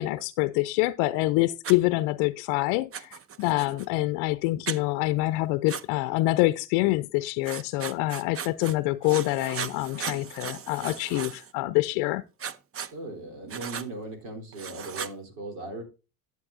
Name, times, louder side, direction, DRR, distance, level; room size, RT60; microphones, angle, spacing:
voice 1, 0.0-12.2, left 19 dB, 65° left, 0.6 m, -26 dB
Writing, 1.6-1.8 2.9-3.9 4.7-4.8 5.7-5.8 7.4-8.8 9.0-11.5 12.4-12.9 13.5-13.9 14.5-15.1, right 7 dB, 30° right, 0.8 m, -37 dB
voice 2, 12.9-15.8, right 2 dB, 75° right, 3.5 m, -38 dB
12.0 x 7.6 x 2.5 m
hypercardioid pair, 75°, 44 cm